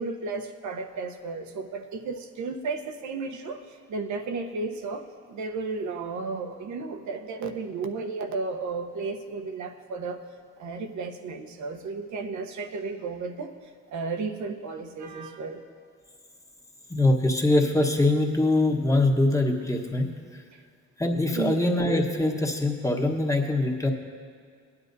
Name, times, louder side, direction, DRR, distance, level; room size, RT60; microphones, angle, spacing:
voice 1, 0.0-10.2 10.6-13.5 13.9-15.6 20.5-20.6 21.3-21.6, right 4 dB, 70° right, 5 dB, 1.0 m, -33 dB
voice 2, 16.9-20.4 21.0-23.9, left 2 dB, 10° left, 2 dB, 1.2 m, -23 dB
18.5 x 9.9 x 2.7 m, 2.1 s
cardioid pair, 90°, 30 cm